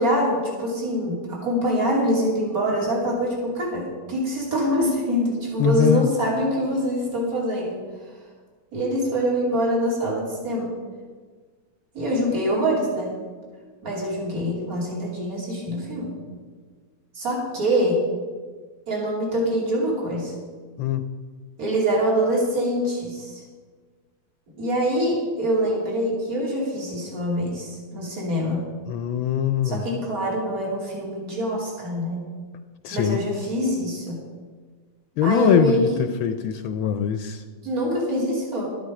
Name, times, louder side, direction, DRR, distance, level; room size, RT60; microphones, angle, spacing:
voice 1, 0.0-7.8 8.7-10.7 11.9-13.2 13.8-16.1 17.1-18.0 18.9-20.3 21.6-23.4 24.5-28.6 29.6-32.2 32.9-34.2 35.2-36.0 37.6-38.7, equal, 40° right, -3 dB, 3.4 m, -24 dB
voice 2, 5.6-6.1 20.8-21.1 28.9-29.8 32.8-33.2 35.2-37.4, left 9 dB, 75° left, 9 dB, 1.3 m, -22 dB
13.0 x 11.5 x 4.8 m, 1.5 s
omnidirectional pair, 2.3 m